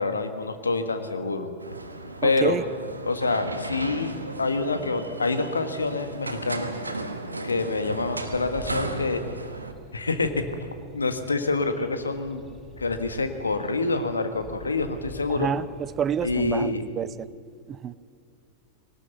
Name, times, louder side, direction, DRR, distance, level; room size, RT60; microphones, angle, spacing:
voice 1, 0.0-1.5 2.2-2.6 3.0-4.1 4.4-6.7 7.4-9.2 9.9-10.5 10.9-12.4 12.8-15.5 16.2-16.8, left 3 dB, 75° left, 8 dB, 1.5 m, -26 dB
sound 1, 1.6-9.7, right 2 dB, 80° right, 1.3 m, -35 dB
voice 2, 2.2-2.6 15.4-17.3 17.7-17.9, right 8 dB, 25° right, 19 dB, 0.5 m, -28 dB
sound 2, 8.2-16.5, equal, 5° right, 4.9 m, -46 dB
21.0 x 18.5 x 6.9 m, 2.3 s
figure-of-eight pair, 90°, 0 cm